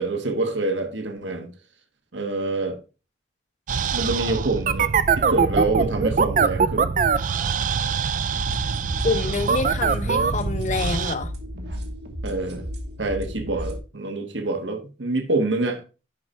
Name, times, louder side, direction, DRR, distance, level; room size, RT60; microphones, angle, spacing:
voice 1, 0.0-1.5 2.1-2.8 3.9-4.9 5.2-6.9 12.2-12.7 13.0-15.8, right 2 dB, 90° right, 1.3 m, -26 dB
sound 1, 3.7-11.1, right 5 dB, 45° right, 0.4 m, -23 dB
sound 2, 8.3-13.8, equal, 65° right, 1.3 m, -34 dB
voice 2, 9.0-11.3, left 3 dB, 40° left, 0.8 m, -26 dB
10.5 x 4.3 x 3.5 m
head